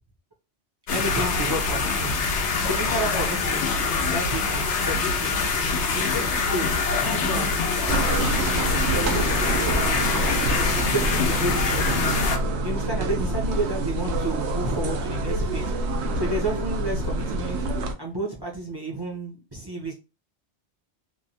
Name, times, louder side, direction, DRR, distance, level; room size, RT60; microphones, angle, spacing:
sound 1, 0.9-12.4, left 4 dB, 85° left, 0.9 m, -24 dB
voice 1, 0.9-2.1 2.6-3.7 4.0-5.4 5.9-7.5 8.1-9.6 10.1-12.0 12.6-15.7 16.1-17.6 18.0-19.9, right 2 dB, 30° right, -2 dB, 0.6 m, -31 dB
sound 2, 7.9-17.9, right 1 dB, 80° right, 0.8 m, -26 dB
3.0 x 2.1 x 2.6 m, 0.29 s
omnidirectional pair, 1.1 m